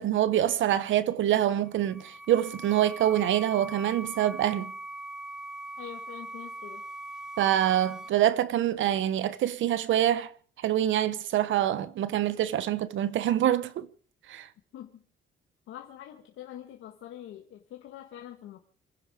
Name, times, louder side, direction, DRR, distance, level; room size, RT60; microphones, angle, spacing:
voice 1, 0.0-4.7 7.4-10.3 10.6-13.9 14.3-14.5, right 12 dB, 75° right, 1.0 m, -25 dB
sound 1, 1.6-8.1, right 1 dB, 5° right, 1.1 m, -41 dB
voice 2, 5.8-6.8 14.7-15.0 15.7-18.6, left 11 dB, 85° left, 1.8 m, -44 dB
27.5 x 10.5 x 5.1 m
cardioid pair, 90°, 20 cm